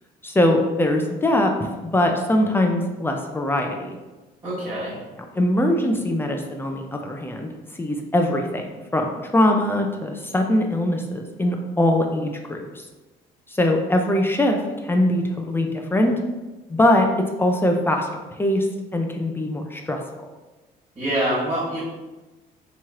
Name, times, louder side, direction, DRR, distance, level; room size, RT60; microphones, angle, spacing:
voice 1, 0.2-1.5 1.8-4.0 5.2-7.5 7.8-12.7 13.5-16.1 16.7-17.1 17.4-18.1 18.4-18.7 18.9-20.0, left 1 dB, 15° left, 3 dB, 0.4 m, -22 dB
voice 2, 4.4-5.0 21.0-21.8, right 1 dB, 30° right, -11 dB, 1.3 m, -25 dB
3.0 x 2.9 x 3.6 m, 1.1 s
cardioid pair, 110°, 17 cm